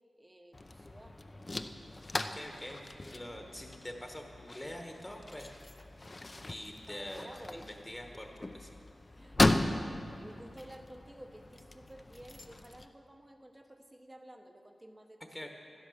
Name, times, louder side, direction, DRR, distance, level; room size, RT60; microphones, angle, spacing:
voice 1, 0.2-1.2 6.9-7.7 9.2-15.5, right 1 dB, 15° right, 6 dB, 0.9 m, -53 dB
sound 1, 0.5-12.9, left 2 dB, 30° left, 0.5 m, -36 dB
voice 2, 2.3-2.8 3.1-5.5 6.4-8.7 15.3-15.5, left 1 dB, 10° left, 3 dB, 1.1 m, -45 dB
12.0 x 10.5 x 6.4 m, 2.5 s
wide cardioid pair, 110°, 0 cm